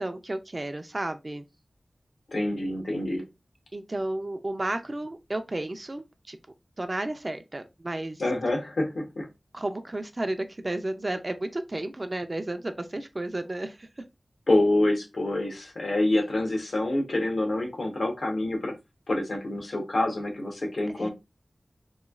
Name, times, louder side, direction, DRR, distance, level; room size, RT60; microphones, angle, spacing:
voice 1, 0.0-1.4 3.7-6.4 6.8-8.2 9.5-13.9 21.0-21.1, right 1 dB, 40° right, 0.3 m, -32 dB
voice 2, 2.3-3.2 8.2-9.3 14.5-18.7 19.1-21.1, left 1 dB, 80° left, 0.8 m, -26 dB
3.0 x 2.2 x 2.3 m
wide cardioid pair, 65°, 0 cm